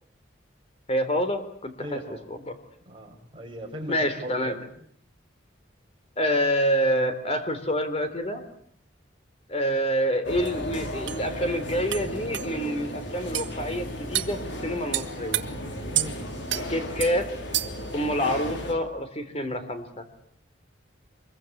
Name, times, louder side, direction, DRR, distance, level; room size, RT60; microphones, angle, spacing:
voice 1, 0.9-2.0 2.5-2.6 3.9-4.6 6.2-8.4 9.5-15.4 16.5-17.3 17.9-20.0, equal, 30° left, 8 dB, 3.6 m, -27 dB
voice 2, 1.8-2.2 2.8-4.5 15.9-16.2, equal, 25° right, 0 dB, 6.9 m, -38 dB
sound 1, 10.2-18.7, left 1 dB, 65° left, 4.7 m, -35 dB
sound 2, 10.5-10.6 11.1-11.2 11.9-12.0 12.3-12.5 13.3-13.5 14.1-14.3 14.9-15.4 15.9-16.1 16.5-16.6 17.0-17.1 17.5-17.8, right 13 dB, 75° right, 1.8 m, -28 dB
25.0 x 22.5 x 8.1 m, 0.65 s
head